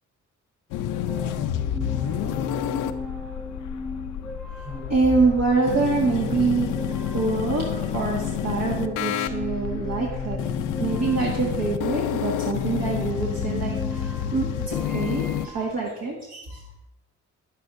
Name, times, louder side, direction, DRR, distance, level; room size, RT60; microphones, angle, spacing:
sound 1, 0.7-15.5, left 10 dB, 85° left, 0.5 m, -29 dB
sound 2, 1.1-15.7, left 1 dB, 5° left, 0.6 m, -36 dB
voice 1, 4.9-6.7 7.1-10.4 10.8-16.6, right 4 dB, 60° right, -3 dB, 1.7 m, -25 dB
9.7 x 8.9 x 2.6 m, 0.89 s
cardioid pair, 90°, 30 cm